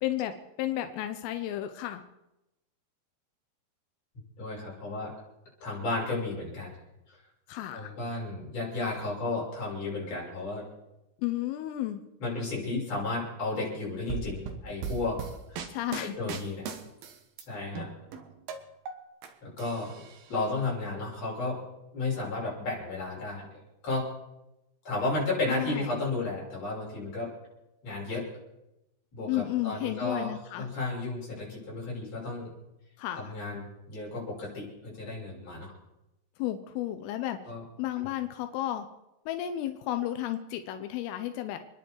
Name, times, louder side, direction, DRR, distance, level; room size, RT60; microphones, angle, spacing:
voice 1, 0.0-2.0 7.5-7.9 11.2-12.0 15.7-16.2 25.5-25.9 29.3-30.7 33.0-33.3 36.4-37.4 37.8-38.9 39.3-41.6, left 13 dB, 85° left, 7 dB, 3.5 m, -32 dB
voice 2, 4.4-5.1 5.6-6.7 7.1-7.2 7.7-10.6 12.2-15.2 15.5-15.6 16.0-16.7 17.5-17.9 19.4-20.0 20.3-21.6 21.9-24.1 24.9-27.3 27.8-28.3 29.1-32.5 33.1-35.7 37.4-37.6 38.0-38.1, left 3 dB, 30° left, -5 dB, 6.9 m, -33 dB
sound 1, 14.1-17.4 17.8-19.3 19.6-20.5, right 6 dB, 65° right, 2.4 m, -38 dB
29.0 x 10.5 x 4.6 m, 0.93 s
omnidirectional pair, 5.7 m